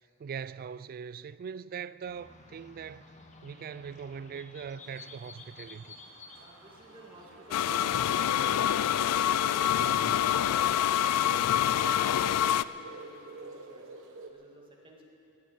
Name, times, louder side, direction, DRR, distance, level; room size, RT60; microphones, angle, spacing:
voice 1, 0.2-3.1 3.4-5.9 9.8-10.2, right 7 dB, 40° right, 0.3 m, -41 dB
sound 1, 2.0-7.7, left 3 dB, 30° left, 1.2 m, -52 dB
sound 2, 4.8-14.3, right 3 dB, 60° right, 1.2 m, -48 dB
voice 2, 6.4-8.2 8.5-8.9 9.4-15.1, equal, 25° right, 2.2 m, -53 dB
sound 3, 7.5-12.6, left 10 dB, 90° left, 0.4 m, -26 dB
16.5 x 9.4 x 8.9 m
head